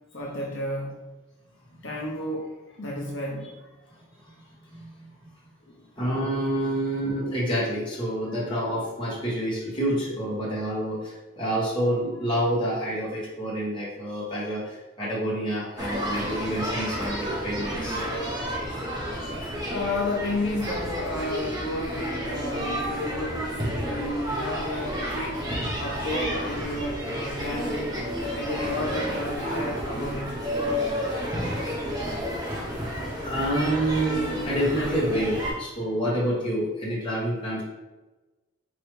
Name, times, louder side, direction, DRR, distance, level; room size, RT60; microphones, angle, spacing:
voice 1, 0.1-1.0 1.8-3.7 5.7-5.8 17.5-17.6 19.7-23.6 23.8-25.5 25.8-27.9 28.3-30.4, left 1 dB, 65° left, -3 dB, 0.7 m, -32 dB
voice 2, 3.9-5.5 6.0-18.0 19.2-19.6 22.3-22.5 23.0-23.2 23.8-24.1 29.4-29.8 30.7-31.6 31.9-32.1 32.6-37.6, right 1 dB, 25° left, -7 dB, 1.4 m, -29 dB
sound 1, 15.8-35.5, equal, 20° right, 0.7 m, -31 dB
4.8 x 3.0 x 3.2 m, 1.1 s
head